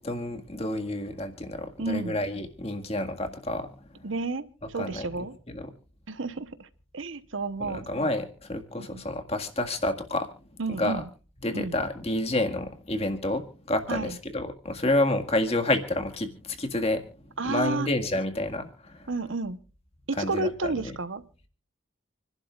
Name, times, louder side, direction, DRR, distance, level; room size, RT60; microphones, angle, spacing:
voice 1, 0.0-4.1 4.7-5.7 7.6-10.3 10.7-11.0 11.4-17.1 17.4-19.1 20.2-20.9, left 1 dB, 30° left, 5 dB, 1.8 m, -29 dB
voice 2, 1.8-2.2 4.0-5.4 6.1-6.7 6.9-7.9 8.8-9.0 10.6-11.0 11.5-11.8 13.9-14.1 17.4-17.9 19.1-19.6 20.1-21.2, right 3 dB, 75° right, 14 dB, 1.0 m, -31 dB
28.5 x 11.5 x 2.4 m, 0.35 s
head